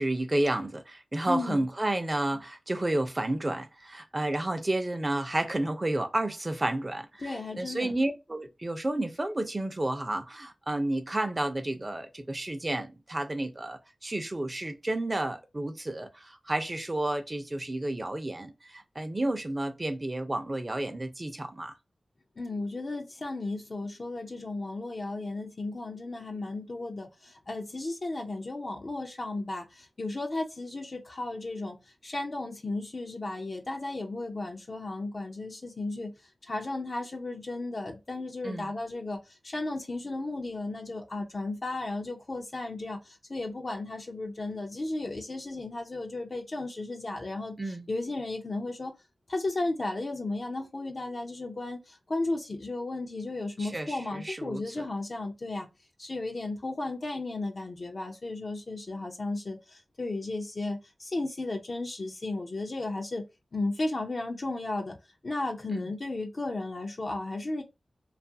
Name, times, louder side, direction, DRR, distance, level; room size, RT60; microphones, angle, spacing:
voice 1, 0.0-21.7 38.4-38.7 47.6-47.9 53.6-54.9 65.7-65.9, right 1 dB, 35° right, 0.6 m, -31 dB
voice 2, 1.3-1.6 7.2-7.9 22.4-31.8 32.0-36.1 36.4-48.9 49.3-55.7 56.0-63.2 63.5-65.0 65.2-67.6, left 2 dB, 55° left, 0.5 m, -34 dB
2.6 x 2.4 x 2.6 m
cardioid pair, 50°, 0 cm